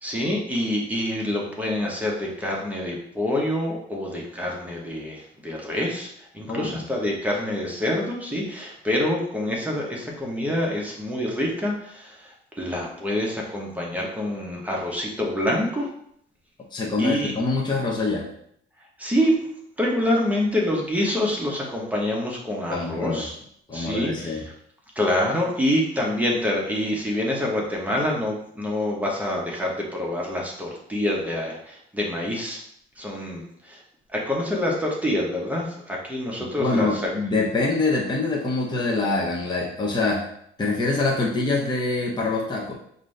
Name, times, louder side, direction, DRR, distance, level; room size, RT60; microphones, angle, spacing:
voice 1, 0.0-15.9 17.0-17.3 19.0-19.3 19.8-23.3 23.7-24.4 25.0-32.6 33.0-33.8 34.1-37.1, left 1 dB, 5° right, -2 dB, 0.9 m, -26 dB
voice 2, 6.5-6.8 16.7-18.3 22.7-23.3 23.7-24.4 36.6-40.2 40.6-42.7, left 3 dB, 20° left, -2 dB, 0.7 m, -25 dB
5.0 x 2.6 x 3.2 m, 0.68 s
cardioid pair, 125°, 21 cm